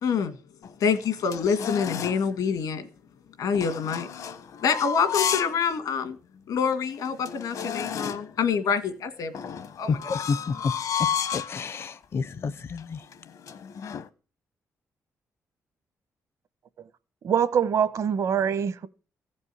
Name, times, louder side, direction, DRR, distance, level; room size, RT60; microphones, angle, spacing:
voice 1, 0.0-0.4 0.8-2.9 3.4-4.1 4.6-6.2 6.5-10.1, left 6 dB, 85° left, 2.0 m, -26 dB
sound 1, 0.6-2.3 3.5-5.6 6.0-6.1 6.7-6.8 7.0-8.4 9.3-11.6 12.2-12.5 12.8-14.1, left 8 dB, 65° left, 0.9 m, -32 dB
voice 2, 10.1-10.5 11.3-13.0, left 5 dB, 45° left, 0.6 m, -31 dB
voice 3, 17.2-18.9, right 8 dB, 60° right, 1.0 m, -24 dB
15.5 x 5.4 x 9.8 m
cardioid pair, 130°, 6 cm